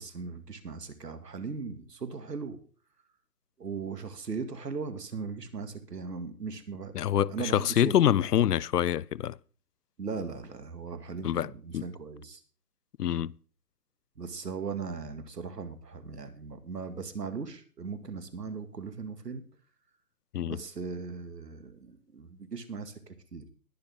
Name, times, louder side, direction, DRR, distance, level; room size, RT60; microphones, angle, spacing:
voice 1, 0.0-2.6 3.6-6.9 7.3-7.9 10.0-12.4 14.2-19.4 20.4-23.5, right 5 dB, 85° right, 2.3 m, -38 dB
voice 2, 6.9-9.4 11.2-11.8 13.0-13.3 20.3-20.6, left 10 dB, 75° left, 0.6 m, -26 dB
20.5 x 6.9 x 3.8 m
hypercardioid pair, 165°, 47 cm